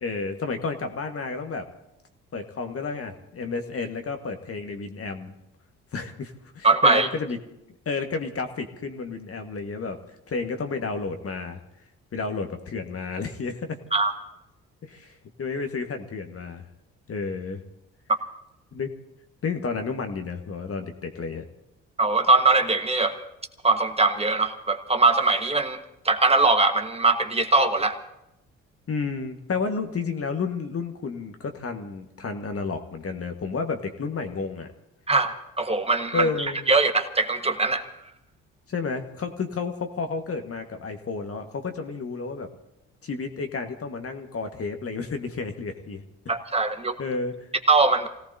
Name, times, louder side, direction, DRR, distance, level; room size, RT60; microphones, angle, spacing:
voice 1, 0.0-1.7 2.3-5.3 5.9-7.4 7.8-10.0 10.3-11.6 12.1-13.8 14.8-16.6 17.1-17.6 18.7-18.9 19.4-21.5 28.9-34.7 36.1-36.7 38.7-42.5 43.0-46.0 47.0-47.5, left 4 dB, 40° left, 6 dB, 1.7 m, -31 dB
voice 2, 6.6-7.1 13.9-14.1 22.0-23.2 23.6-28.0 35.1-36.3 36.7-37.9 46.3-47.0 47.7-48.1, right 3 dB, 20° right, 7 dB, 1.5 m, -21 dB
27.5 x 17.5 x 2.8 m, 0.89 s
hypercardioid pair, 50°, 34 cm